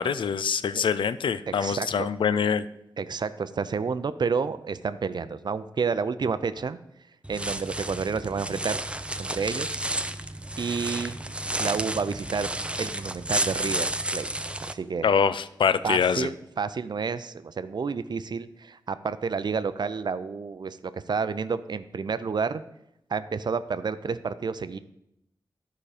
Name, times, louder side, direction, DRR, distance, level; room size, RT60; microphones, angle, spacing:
voice 1, 0.0-2.7 15.0-16.3, left 6 dB, 90° left, 14 dB, 0.4 m, -24 dB
voice 2, 1.5-2.1 3.0-6.8 7.3-8.8 9.2-9.8 10.6-11.2 11.6-12.5 12.8-13.9 14.1-14.3 14.7-15.1 15.8-22.6 23.1-24.8, right 5 dB, 60° right, 13 dB, 0.5 m, -30 dB
sound 1, 7.2-14.7, right 1 dB, 15° right, 0.5 m, -31 dB
11.0 x 5.0 x 4.9 m, 0.82 s
cardioid pair, 60°, 8 cm